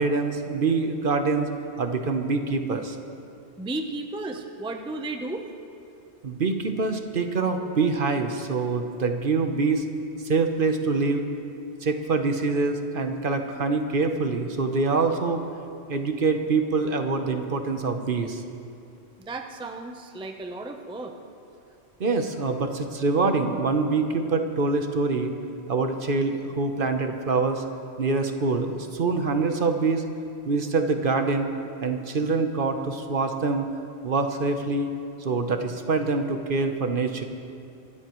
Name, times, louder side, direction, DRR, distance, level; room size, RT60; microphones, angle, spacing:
voice 1, 0.0-1.5 1.8-3.0 6.2-9.9 10.2-11.3 11.8-15.4 15.9-18.4 22.0-25.3 25.7-27.6 28.0-30.0 30.4-31.5 31.8-33.7 34.0-34.9 35.2-37.2, right 4 dB, 50° right, 6 dB, 1.0 m, -25 dB
voice 2, 3.6-5.4 19.2-21.1, right 2 dB, 5° right, 4 dB, 0.6 m, -34 dB
25.0 x 13.0 x 3.1 m, 2.6 s
omnidirectional pair, 1.2 m